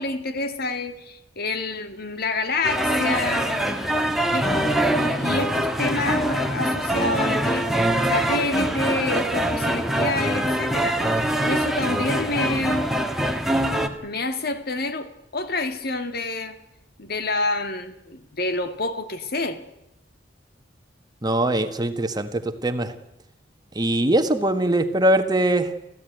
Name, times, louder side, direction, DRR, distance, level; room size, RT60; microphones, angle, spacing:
voice 1, 0.0-3.6 4.3-12.9 14.0-16.6 17.0-19.6, left 3 dB, 55° left, 1.9 m, -28 dB
sound 1, 2.6-13.9, right 1 dB, ahead, 1.7 m, -23 dB
voice 2, 21.2-22.9 23.7-25.7, right 1 dB, 20° right, 1.4 m, -22 dB
27.5 x 15.5 x 9.3 m
head